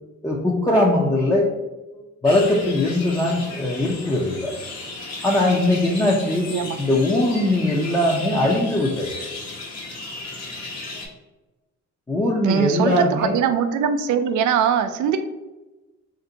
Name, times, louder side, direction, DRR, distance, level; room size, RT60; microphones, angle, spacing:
voice 1, 0.2-1.5 1.9-4.5 5.2-6.5 6.8-9.1 12.1-13.4, left 1 dB, 10° left, -3 dB, 0.5 m, -20 dB
sound 1, 2.2-11.1, left 3 dB, 60° left, 1.1 m, -35 dB
voice 2, 12.4-15.2, right 8 dB, 75° right, 9 dB, 0.5 m, -21 dB
3.3 x 2.6 x 3.9 m, 1.1 s
cardioid pair, 90°, 30 cm